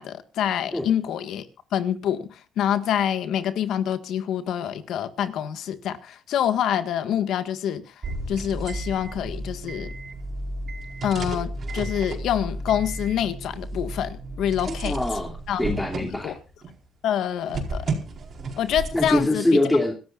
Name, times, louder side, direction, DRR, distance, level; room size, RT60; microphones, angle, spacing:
voice 1, 0.0-1.5 1.7-7.8 8.3-9.9 11.0-14.9 15.5-15.6 16.0-16.3 17.0-18.0 18.6-19.4, left 10 dB, 80° left, 1.8 m, -26 dB
sound 1, 8.0-16.8 17.5-19.3, right 2 dB, 50° right, 4.5 m, -33 dB
voice 2, 14.7-15.3 15.6-16.3 18.9-20.0, left 1 dB, 10° left, 3.0 m, -23 dB
26.0 x 13.0 x 2.5 m
cardioid pair, 90°, 0 cm